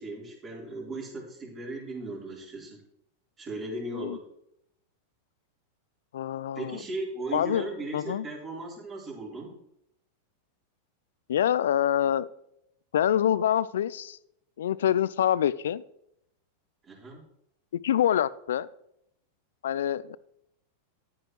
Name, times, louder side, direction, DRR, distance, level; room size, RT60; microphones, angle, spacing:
voice 1, 0.0-2.8 3.4-4.3 6.5-9.6 16.8-17.2, right 2 dB, 30° right, -2 dB, 3.7 m, -37 dB
voice 2, 6.1-6.8 7.3-7.7 7.9-8.3 11.3-12.3 12.9-14.2 14.6-15.8 17.8-18.7 19.6-20.2, left 10 dB, 75° left, 19 dB, 0.4 m, -26 dB
10.5 x 9.2 x 3.1 m, 0.77 s
hypercardioid pair, 95°, 0 cm